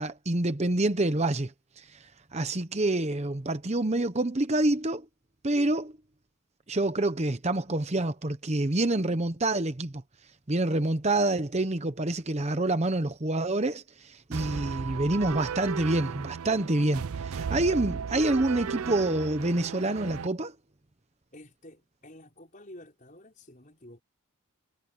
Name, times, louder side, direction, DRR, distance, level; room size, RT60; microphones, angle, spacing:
voice 1, 0.0-5.1 5.4-5.9 6.7-9.9 10.5-20.5, right 2 dB, 30° right, 0.9 m, -27 dB
sound 1, 14.3-20.3, right 6 dB, 85° right, 0.5 m, -35 dB
voice 2, 21.3-24.0, left 1 dB, 35° left, 5.4 m, -50 dB
head